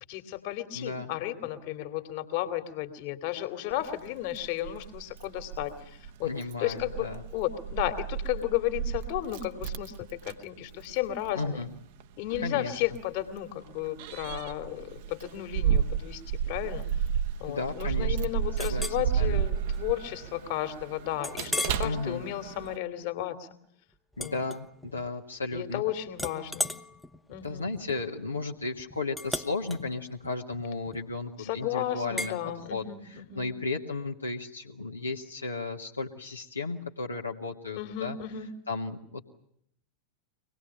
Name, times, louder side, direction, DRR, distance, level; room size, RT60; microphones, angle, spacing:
voice 1, 0.1-5.7 6.2-6.3 6.6-7.1 7.3-9.9 10.3-11.6 12.2-16.2 16.5-16.8 17.4-23.4 24.2-24.3 25.5-26.7 27.3-27.7 31.4-33.5 37.8-38.5, left 13 dB, 50° left, 8 dB, 2.5 m, -33 dB
voice 2, 0.7-1.1 6.2-7.2 11.3-11.7 12.4-12.8 17.5-18.2 18.6-19.4 21.8-22.2 24.2-25.8 27.4-38.2 38.7-39.2, left 3 dB, 80° left, 0 dB, 1.7 m, -34 dB
Keys jangling, 3.7-22.8, right 8 dB, 50° right, 1.2 m, -33 dB
Chink clink, 18.6-19.0 19.6-19.8 20.2-20.3 21.2-21.9 22.4-22.7 24.1-25.1 25.4-25.8 26.1-31.3 32.2-32.4, left 1 dB, ahead, 1.0 m, -37 dB
24.5 x 19.5 x 8.9 m, 0.71 s
figure-of-eight pair, 90°, 0 cm